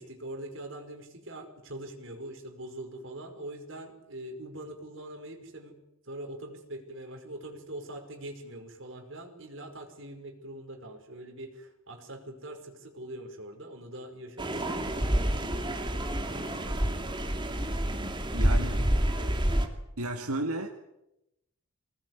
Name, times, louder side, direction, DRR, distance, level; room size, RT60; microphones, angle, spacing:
voice 1, 0.0-5.7 6.0-16.9 18.0-18.7 19.1-19.4, right 1 dB, 60° right, 4 dB, 5.3 m, -43 dB
sound 1, 14.4-19.7, right 1 dB, 20° right, 2.5 m, -28 dB
voice 2, 18.3-18.9 20.0-20.7, right 1 dB, 85° right, 4 dB, 2.1 m, -33 dB
24.0 x 19.5 x 9.6 m, 0.88 s
head